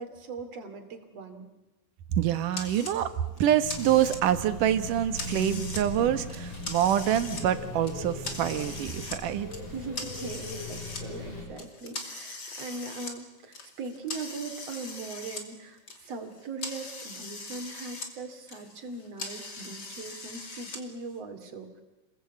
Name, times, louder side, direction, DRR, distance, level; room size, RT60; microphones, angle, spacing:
voice 1, 0.0-1.5 9.6-21.7, right 3 dB, 55° right, 6 dB, 3.7 m, -40 dB
voice 2, 2.1-3.1 3.4-9.5, right 11 dB, 85° right, 11 dB, 2.8 m, -26 dB
sound 1, 2.5-3.0 3.4-4.4 4.8-5.8 6.2-7.4 7.8-9.2 9.5-11.0 11.6-15.5 15.7-18.1 18.4-20.8, left 3 dB, 35° left, 2.9 m, -40 dB
sound 2, 3.6-11.4, left 1 dB, 50° left, 8.3 m, -39 dB
28.5 x 20.5 x 8.4 m, 1.1 s
omnidirectional pair, 3.6 m